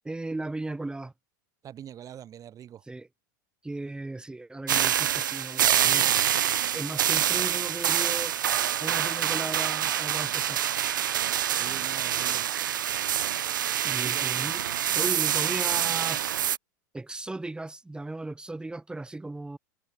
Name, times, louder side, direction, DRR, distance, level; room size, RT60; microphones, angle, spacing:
voice 1, 0.0-1.1 2.9-3.1 3.6-8.4 8.8-10.6 13.8-14.6 14.9-16.3 16.9-19.6, right 2 dB, 10° right, 3.5 m, -36 dB
voice 2, 1.6-2.8 11.6-12.5 13.9-14.5, right 10 dB, 35° right, 4.7 m, -44 dB
sound 1, 4.7-16.6, right 10 dB, 80° right, 1.3 m, -26 dB
hypercardioid pair, 100°, 10 cm